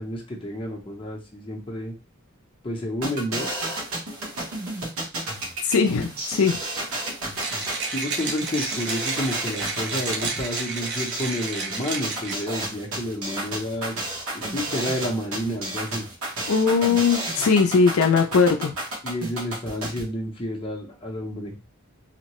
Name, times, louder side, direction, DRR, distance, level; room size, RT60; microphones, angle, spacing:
voice 1, 0.0-1.9 2.6-3.5 7.9-13.9 14.3-16.0 19.0-21.5, equal, 25° left, -1 dB, 0.7 m, -30 dB
sound 1, 3.0-20.0, right 1 dB, 80° right, 1.0 m, -31 dB
voice 2, 5.6-6.6 16.5-18.7, left 5 dB, 75° left, 4 dB, 0.4 m, -20 dB
Mechanisms, 7.4-12.6, right 4 dB, 55° right, 0.6 m, -31 dB
2.8 x 2.1 x 2.9 m, 0.30 s
head